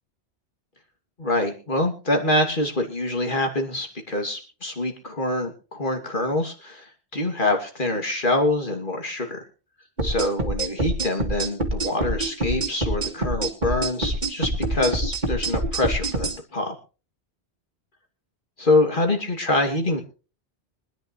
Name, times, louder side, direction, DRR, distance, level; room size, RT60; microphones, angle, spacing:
voice 1, 1.2-9.4 10.0-16.7 18.6-20.0, left 2 dB, 50° left, 3 dB, 2.9 m, -25 dB
sound 1, 10.0-16.4, right 1 dB, 45° right, 2.3 m, -26 dB
24.5 x 10.5 x 3.2 m, 0.35 s
omnidirectional pair, 1.1 m